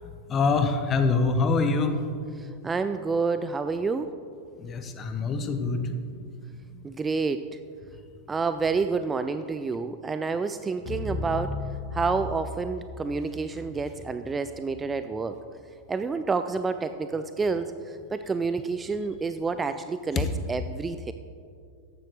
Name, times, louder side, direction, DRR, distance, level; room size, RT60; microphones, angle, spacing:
voice 1, 0.3-2.0 4.6-6.2 20.1-20.3, left 4 dB, 25° left, 7 dB, 1.0 m, -25 dB
voice 2, 2.4-4.1 6.8-7.5 8.3-11.6 11.9-15.3 15.9-21.1, right 4 dB, 15° right, 10 dB, 0.3 m, -29 dB
sound 1, 10.9-15.3, left 3 dB, 45° left, 2.9 m, -36 dB
14.0 x 10.0 x 3.2 m, 2.3 s
figure-of-eight pair, 90°, 0 cm